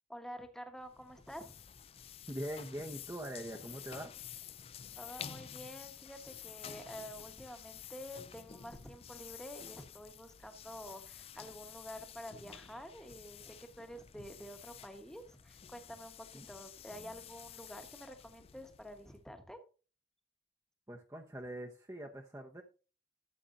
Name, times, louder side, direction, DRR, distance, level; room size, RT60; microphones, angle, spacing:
voice 1, 0.1-1.6 4.9-19.6, equal, 5° left, 6 dB, 1.1 m, -49 dB
sound 1, 0.8-19.3, left 8 dB, 35° left, 0.4 m, -51 dB
voice 2, 2.3-4.1 16.3-16.5 20.9-22.6, right 1 dB, 15° right, 2 dB, 0.8 m, -43 dB
12.5 x 7.7 x 2.6 m, 0.35 s
head